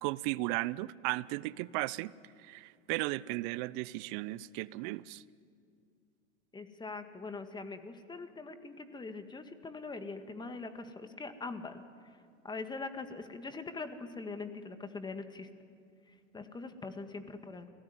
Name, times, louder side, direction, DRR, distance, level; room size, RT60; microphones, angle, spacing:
voice 1, 0.0-2.1 2.4-5.2, right 19 dB, 40° right, 20 dB, 0.7 m, -35 dB
voice 2, 6.5-11.8 12.4-15.5 16.3-17.7, left 3 dB, 10° left, 8 dB, 1.8 m, -42 dB
29.0 x 18.0 x 9.6 m, 2.3 s
hypercardioid pair, 105°, 38 cm